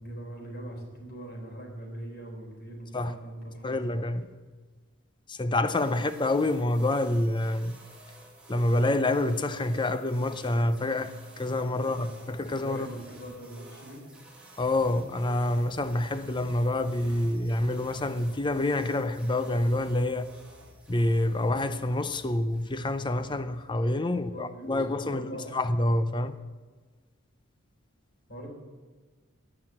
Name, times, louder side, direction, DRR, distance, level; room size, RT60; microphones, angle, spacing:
voice 1, 0.0-3.9 4.1-4.2 5.9-6.0 11.7-14.0 24.1-25.6 28.3-28.5, right 1 dB, 50° left, 4.0 m, -42 dB
voice 2, 3.6-4.3 5.3-7.8 8.5-12.9 14.6-20.3 20.9-26.4, left 1 dB, 20° left, 0.6 m, -27 dB
sound 1, 5.6-23.6, right 2 dB, 5° right, 2.3 m, -52 dB
sound 2, 14.6-23.6, left 2 dB, 80° left, 1.3 m, -56 dB
18.5 x 6.3 x 7.6 m
head